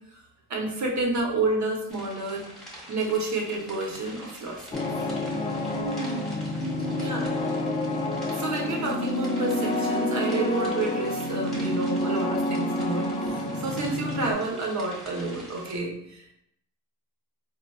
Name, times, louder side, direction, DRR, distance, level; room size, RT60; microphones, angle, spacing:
voice 1, 0.5-2.5 2.9-4.9 6.9-7.3 8.3-16.3, right 3 dB, 45° right, 0 dB, 0.9 m, -30 dB
sound 1, 1.9-15.8, equal, ahead, 1.1 m, -45 dB
sound 2, 4.7-14.3, left 1 dB, 15° left, 0.3 m, -28 dB
voice 2, 5.7-6.3 6.5-7.7, right 4 dB, 85° right, 0 dB, 0.5 m, -37 dB
4.2 x 2.1 x 2.2 m, 0.76 s
cardioid pair, 80°, 38 cm